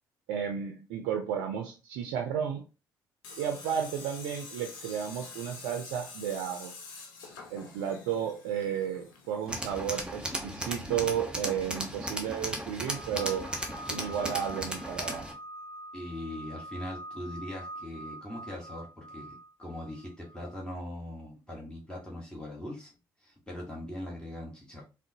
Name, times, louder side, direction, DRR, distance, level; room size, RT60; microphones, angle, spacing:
voice 1, 0.3-2.6 3.4-6.7 7.5-13.5 13.9-15.3, right 8 dB, 70° right, 4 dB, 0.4 m, -33 dB
Tools, 3.2-11.0, left 4 dB, 80° left, 0.6 m, -47 dB
Tools 2, 9.5-15.3, right 1 dB, 10° right, 0.9 m, -36 dB
sound 1, 12.8-20.6, right 1 dB, 50° left, 1.2 m, -45 dB
voice 2, 15.9-22.9 23.2-24.8, left 1 dB, 10° left, -4 dB, 1.3 m, -41 dB
3.6 x 2.1 x 2.6 m, 0.31 s
hypercardioid pair, 45°, 11 cm